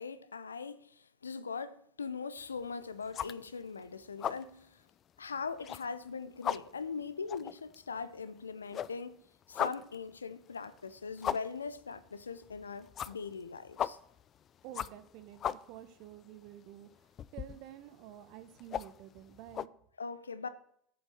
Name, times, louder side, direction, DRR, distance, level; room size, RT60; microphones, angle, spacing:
voice 1, 0.0-4.8 5.2-9.2 9.5-14.0 20.0-20.5, left 5 dB, 80° left, 0.7 m, -41 dB
sound 1, 2.4-2.7 3.0-3.8 4.0-4.5 4.9-5.0 5.5-6.1 6.3-8.4 8.7-19.7, left 9 dB, 35° left, 0.4 m, -39 dB
voice 2, 14.6-16.9 17.3-19.7, right 12 dB, 55° right, 1.2 m, -50 dB
8.2 x 7.8 x 8.1 m
figure-of-eight pair, 75°, 0 cm